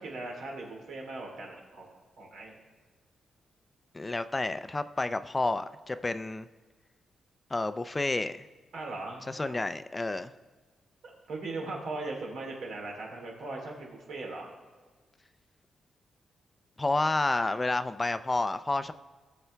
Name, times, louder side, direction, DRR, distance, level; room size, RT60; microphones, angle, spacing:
voice 1, 0.0-1.9 2.2-2.6 8.7-9.6 11.0-14.5, right 2 dB, 85° right, -1 dB, 3.2 m, -39 dB
voice 2, 3.9-6.5 7.5-8.5 9.3-10.3 16.8-18.9, left 2 dB, 20° left, 11 dB, 0.4 m, -30 dB
19.0 x 6.9 x 3.4 m, 1.4 s
cardioid pair, 120°, 0 cm